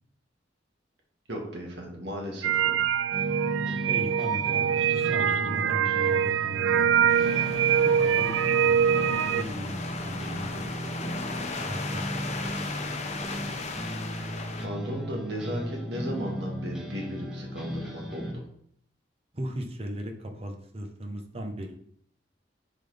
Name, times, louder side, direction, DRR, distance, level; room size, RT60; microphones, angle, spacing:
voice 1, 1.3-2.7 14.6-18.4, equal, 65° right, -1 dB, 2.1 m, -35 dB
sound 1, 2.4-9.4, right 8 dB, 85° right, 0.3 m, -24 dB
sound 2, 3.1-18.3, equal, 5° right, 1.4 m, -36 dB
voice 2, 3.9-7.3 8.0-8.3 8.6-10.9 11.7-12.8 19.3-21.7, equal, 35° right, 4 dB, 1.0 m, -38 dB
sound 3, 7.1-14.7, left 3 dB, 40° left, 0.8 m, -37 dB
10.5 x 4.1 x 3.4 m, 0.65 s
head